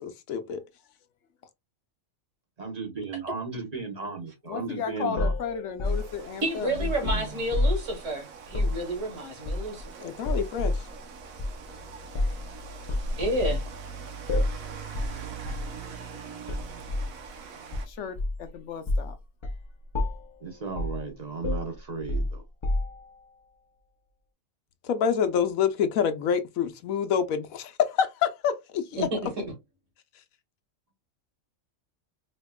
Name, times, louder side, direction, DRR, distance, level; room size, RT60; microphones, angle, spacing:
voice 1, 0.0-0.6 10.0-10.8 24.8-29.1, left 7 dB, 90° left, 1.1 m, -27 dB
voice 2, 2.6-5.3 6.6-7.4 20.4-22.4, right 4 dB, 35° right, 0.9 m, -35 dB
voice 3, 4.5-6.7 17.8-19.2, left 7 dB, 65° left, 0.9 m, -34 dB
sound 1, 5.2-7.9 8.5-8.8 9.5-9.9 10.2-10.9 11.4-11.6 12.1-12.5 12.9-13.7 14.3-14.6 14.9-15.2 15.5-15.7 16.5-17.1 17.7-18.5 18.9-19.1 19.4-19.6 19.9-20.3 20.8-21.0 21.4-23.1, left 2 dB, 35° left, 0.4 m, -28 dB
Rain, 5.8-17.9, right 6 dB, 85° right, 1.2 m, -43 dB
voice 4, 6.4-10.1 13.2-13.6 29.0-29.4, right 1 dB, 65° right, 2.1 m, -30 dB
4.2 x 2.8 x 2.2 m
omnidirectional pair, 1.4 m